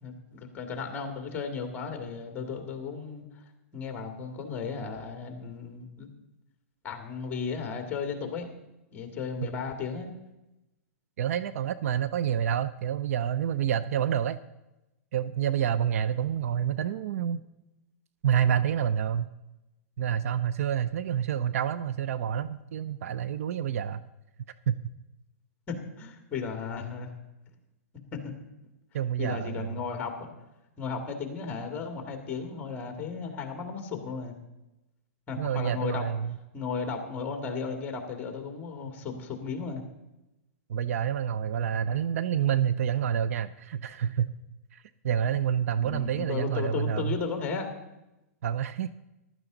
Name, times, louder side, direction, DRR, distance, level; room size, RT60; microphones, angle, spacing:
voice 1, 0.0-3.3 3.7-6.1 6.8-8.5 8.9-10.1 25.7-27.1 28.1-28.4 29.2-30.3 30.8-34.4 35.3-36.0 36.5-39.8 45.8-47.7, left 5 dB, 20° left, 5 dB, 2.1 m, -35 dB
voice 2, 11.2-14.4 15.1-17.4 18.2-19.3 20.0-24.0 24.7-24.8 28.9-29.8 35.4-36.4 40.7-44.3 44.7-47.2 48.4-48.9, right 9 dB, 70° right, 15 dB, 0.5 m, -28 dB
15.0 x 12.0 x 3.9 m, 0.95 s
hypercardioid pair, 150°, 8 cm